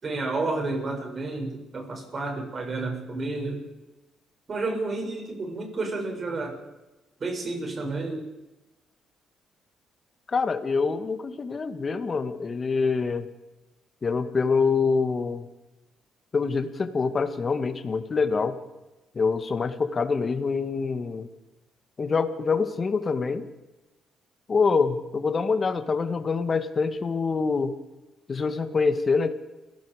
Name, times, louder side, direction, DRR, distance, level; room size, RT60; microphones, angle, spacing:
voice 1, 0.0-3.6 4.5-6.6 7.2-8.3, right 3 dB, 40° right, 2 dB, 7.4 m, -31 dB
voice 2, 10.3-13.3 14.0-15.5 16.3-18.6 19.2-21.3 22.0-23.4 24.5-27.7 28.3-29.3, left 4 dB, 35° left, 8 dB, 2.0 m, -25 dB
29.5 x 17.0 x 5.2 m, 1.0 s
cardioid pair, 90°, 0 cm